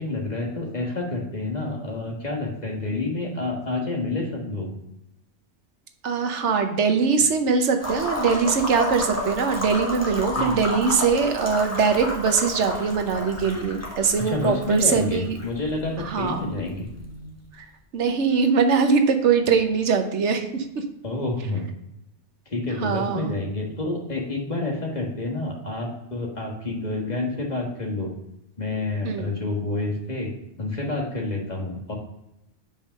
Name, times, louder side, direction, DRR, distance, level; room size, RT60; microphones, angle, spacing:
voice 1, 0.0-4.7 10.3-10.5 14.2-16.9 21.0-21.7 22.5-28.1 28.6-30.3 30.6-31.9, left 2 dB, 40° left, 0 dB, 1.5 m, -28 dB
voice 2, 6.0-15.4 16.0-16.4 17.6-17.7 17.9-20.8 22.8-23.3 29.0-29.3, right 5 dB, 90° right, 6 dB, 1.2 m, -22 dB
sound 1, 7.8-17.6, left 1 dB, 15° left, 1.4 m, -32 dB
5.3 x 5.1 x 6.5 m, 0.87 s
omnidirectional pair, 1.2 m